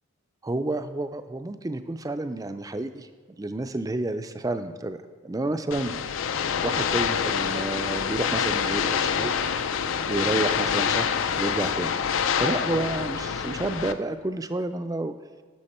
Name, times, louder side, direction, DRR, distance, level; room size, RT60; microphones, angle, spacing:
voice 1, 0.4-3.1 3.4-5.9 6.6-9.4 10.1-12.0 12.4-15.1, right 2 dB, 15° right, 10 dB, 0.4 m, -30 dB
sound 1, 5.7-13.9, left 7 dB, 70° left, 0.4 m, -26 dB
11.5 x 6.5 x 4.3 m, 1.4 s
head